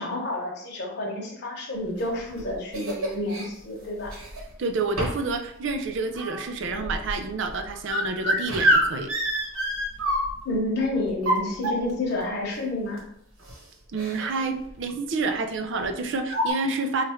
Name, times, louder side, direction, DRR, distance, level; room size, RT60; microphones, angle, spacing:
voice 1, 0.0-4.1 10.4-13.0, left 2 dB, 50° left, -3 dB, 1.0 m, -29 dB
sound 1, 2.0-3.5 4.0-4.5 5.0-5.3 5.7-10.6 11.1-12.1 13.0-13.1 13.4-13.6 13.9-14.4 14.7-14.9 15.8-15.9 16.3-16.5, equal, 85° right, 1.1 m, -27 dB
voice 2, 4.6-9.1 13.9-17.0, right 3 dB, 60° right, 6 dB, 0.4 m, -28 dB
3.1 x 2.4 x 4.2 m, 0.74 s
head